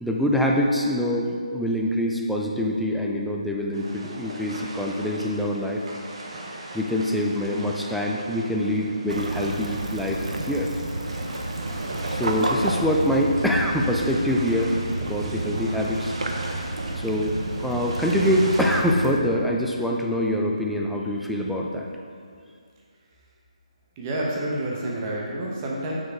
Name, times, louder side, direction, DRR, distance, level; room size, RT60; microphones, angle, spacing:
voice 1, 0.0-5.8 6.7-10.7 12.1-16.1 17.0-17.3 17.6-21.9, equal, ahead, -2 dB, 0.4 m, -25 dB
sound 1, 3.7-18.8, right 1 dB, 50° right, 1.1 m, -39 dB
Waves surf / Splash splatter / Trickle dribble, 9.1-19.2, right 2 dB, 80° right, 0.7 m, -30 dB
voice 2, 24.0-25.9, right 1 dB, 25° right, -3 dB, 1.0 m, -29 dB
6.2 x 4.7 x 4.7 m, 2.2 s
figure-of-eight pair, 155°, 4 cm